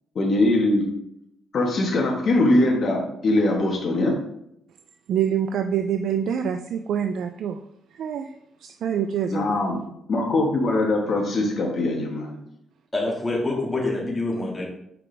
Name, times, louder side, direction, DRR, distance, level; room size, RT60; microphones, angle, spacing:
voice 1, 0.1-0.8 1.5-4.2 9.3-9.8 10.1-12.4, left 2 dB, 50° left, 1.5 m, -22 dB
voice 2, 5.1-7.6 7.9-8.3 8.6-9.6, right 8 dB, 70° right, 0.3 m, -26 dB
voice 3, 12.9-14.6, left 2 dB, 15° left, 2.1 m, -26 dB
6.0 x 4.8 x 3.4 m
cardioid pair, 90°, 0 cm